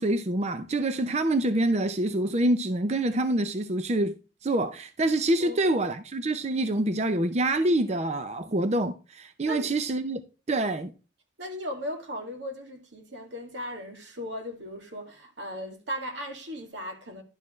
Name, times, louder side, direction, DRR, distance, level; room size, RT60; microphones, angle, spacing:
voice 1, 0.0-4.1 4.4-10.2 10.5-10.9, right 1 dB, 40° right, 0.6 m, -26 dB
voice 2, 9.4-9.8 11.4-17.2, equal, 85° right, 2.2 m, -37 dB
11.5 x 6.6 x 3.1 m
head